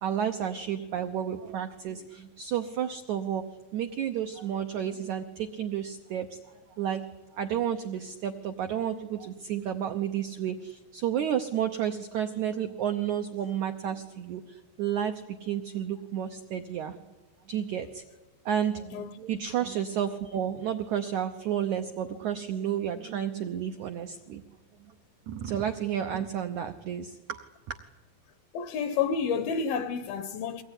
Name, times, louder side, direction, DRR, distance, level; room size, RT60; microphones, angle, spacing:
voice 1, 0.0-3.5 3.7-6.4 6.7-17.0 17.5-18.0 18.4-24.4 24.8-24.9 25.3-27.8, right 9 dB, 80° right, 1.7 m, -31 dB
voice 2, 28.5-30.6, left 6 dB, 75° left, 2.5 m, -30 dB
23.0 x 19.5 x 9.9 m
omnidirectional pair, 4.7 m